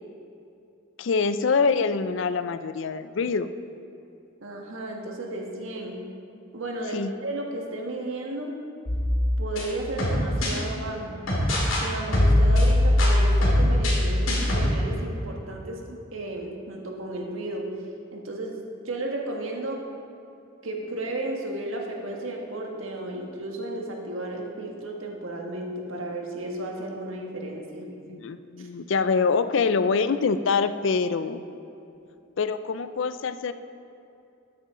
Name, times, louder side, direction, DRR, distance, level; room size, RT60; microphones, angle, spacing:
voice 1, 1.0-3.5 6.9-7.1 28.1-31.4 32.4-33.5, left 5 dB, 70° left, 12 dB, 0.4 m, -25 dB
voice 2, 4.4-6.0 6.5-8.5 9.4-11.2 11.8-17.7 18.1-18.6 18.8-19.8 20.6-28.2 28.6-28.7, right 2 dB, 85° right, 0 dB, 1.5 m, -34 dB
sound 1, 8.9-10.6 11.3-11.8 12.1-14.7, left 1 dB, 85° left, 2.5 m, -21 dB
13.0 x 8.7 x 3.8 m, 2.7 s
head